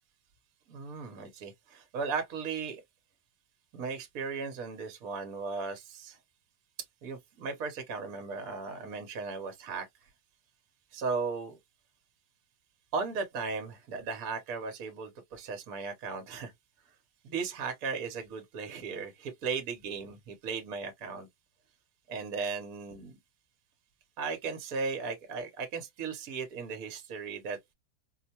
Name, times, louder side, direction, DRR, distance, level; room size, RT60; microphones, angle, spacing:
voice 1, 0.7-2.8 3.7-6.2 7.0-10.1 10.9-11.6 12.9-16.5 17.2-21.3 22.1-23.1 24.2-27.6, right 5 dB, 60° right, 1.2 m, -36 dB
4.3 x 2.1 x 2.8 m
omnidirectional pair, 1.8 m